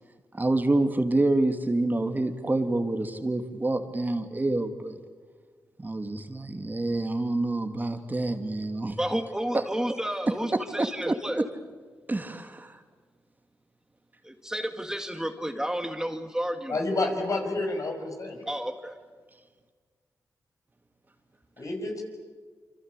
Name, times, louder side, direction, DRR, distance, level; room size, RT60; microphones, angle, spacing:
voice 1, 0.3-5.0 5.8-9.0 9.5-9.6 10.7-11.1 12.1-12.8, right 2 dB, 25° right, 6 dB, 2.6 m, -27 dB
voice 2, 9.0-11.4 14.2-16.9 18.5-19.0, equal, 10° right, 6 dB, 2.1 m, -31 dB
voice 3, 16.7-18.5 21.6-22.0, left 2 dB, 60° left, 3 dB, 6.6 m, -29 dB
27.0 x 26.0 x 8.5 m, 1.5 s
cardioid pair, 60°, 7 cm